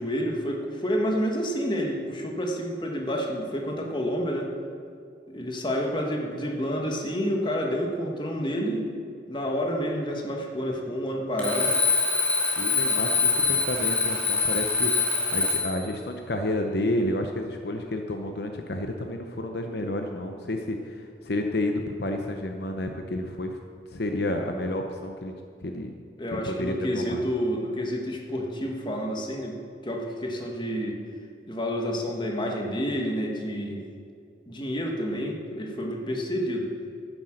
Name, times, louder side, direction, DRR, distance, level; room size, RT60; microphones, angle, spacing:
voice 1, 0.0-4.5 5.3-8.9 9.3-11.7 26.2-29.6 29.8-31.0 31.5-33.8 34.5-36.7, equal, 25° left, 1 dB, 1.4 m, -29 dB
Alarm, 11.4-15.8, left 4 dB, 10° left, 2.5 m, -24 dB
voice 2, 12.6-14.9 15.3-23.6 23.9-25.3 25.6-25.9 26.3-27.2, left 1 dB, 60° left, 4 dB, 0.7 m, -30 dB
11.0 x 9.8 x 6.4 m, 2.4 s
head